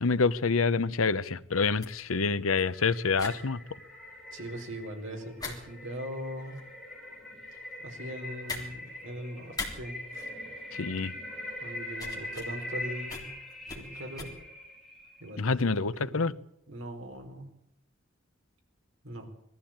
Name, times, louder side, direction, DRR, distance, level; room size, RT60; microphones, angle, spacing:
voice 1, 0.0-3.6 10.7-11.1 15.4-16.3, left 4 dB, 85° left, 16 dB, 0.8 m, -27 dB
sound 1, 1.0-14.2, left 3 dB, 20° left, 3.4 m, -44 dB
sound 2, 2.0-15.4, left 1 dB, ahead, 6.5 m, -43 dB
voice 2, 4.3-6.6 7.8-10.0 11.6-13.3 13.7-14.3 15.2-15.6 16.0-16.2 16.7-17.5 19.0-19.3, equal, 70° right, 3 dB, 4.5 m, -40 dB
20.5 x 14.0 x 8.8 m, 0.78 s
head